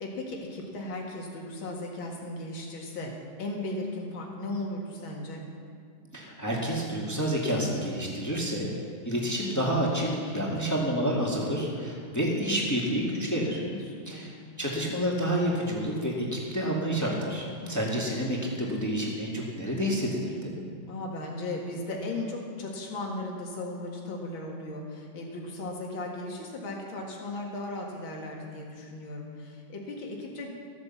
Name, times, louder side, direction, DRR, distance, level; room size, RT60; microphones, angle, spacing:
voice 1, 0.0-3.1 3.4-5.4 10.4-10.8 13.7-14.3 17.6-18.0 20.9-30.5, left 2 dB, 75° left, -1 dB, 2.7 m, -36 dB
voice 2, 6.1-8.7 9.0-13.6 14.1-20.5, equal, 10° left, -3 dB, 2.0 m, -29 dB
14.0 x 9.7 x 7.2 m, 2.3 s
omnidirectional pair, 2.2 m